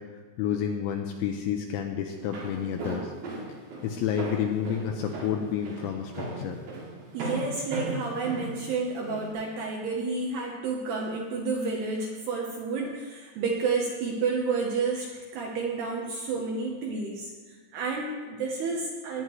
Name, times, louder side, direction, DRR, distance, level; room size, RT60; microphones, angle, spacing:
voice 1, 0.4-3.1 3.8-6.6, left 8 dB, 80° left, 3 dB, 2.7 m, -30 dB
Walk footsteps, 2.1-9.3, right 2 dB, 60° right, 4.2 m, -37 dB
voice 2, 7.1-19.2, right 4 dB, 75° right, -1 dB, 2.5 m, -30 dB
19.5 x 9.4 x 3.1 m, 1.4 s
omnidirectional pair, 5.9 m